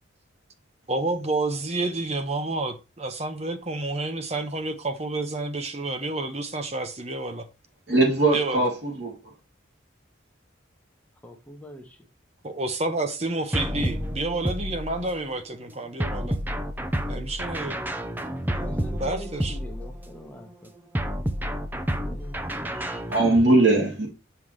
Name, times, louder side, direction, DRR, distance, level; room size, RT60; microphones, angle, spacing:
voice 1, 0.9-7.5 8.3-8.7 12.4-16.4 17.1-17.8 19.0-19.6, right 2 dB, 35° right, 0.9 m, -29 dB
voice 2, 7.9-9.1 22.8-24.1, right 2 dB, 60° right, 2.6 m, -21 dB
voice 3, 11.2-12.0 18.6-20.7 22.0-22.4 23.6-23.8, equal, 5° left, 1.0 m, -43 dB
sound 1, 13.5-15.3 16.0-20.2 20.9-23.4, equal, 10° right, 0.6 m, -30 dB
7.7 x 5.7 x 3.2 m
head